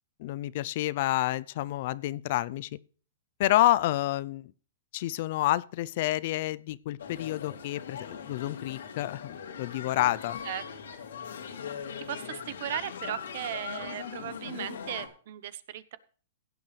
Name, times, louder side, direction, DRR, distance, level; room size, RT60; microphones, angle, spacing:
voice 1, 0.2-2.7 3.4-4.5 4.9-10.4, left 15 dB, 50° left, 0.5 m, -29 dB
sound 1, 7.0-15.1, left 7 dB, 85° left, 3.0 m, -40 dB
voice 2, 12.1-16.0, right 12 dB, 55° right, 1.0 m, -37 dB
16.5 x 9.3 x 3.3 m
hypercardioid pair, 155°, 0 cm